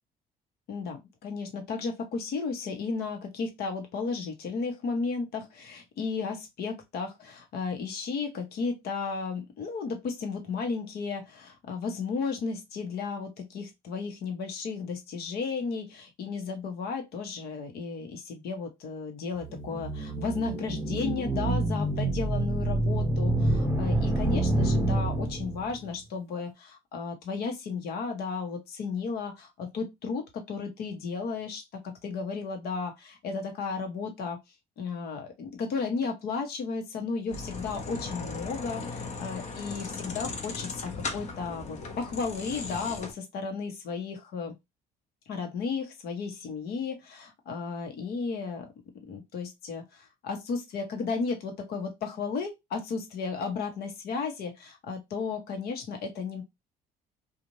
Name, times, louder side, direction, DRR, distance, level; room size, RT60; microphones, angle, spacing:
voice 1, 0.7-34.4 34.8-44.5 45.3-48.7 49.1-56.4, left 5 dB, 70° left, 1.0 m, -34 dB
sound 1, 19.4-25.7, right 2 dB, 15° right, 0.9 m, -27 dB
sound 2, 37.3-43.1, left 4 dB, 45° left, 0.8 m, -37 dB
2.7 x 2.4 x 3.1 m
cardioid pair, 110°, 17 cm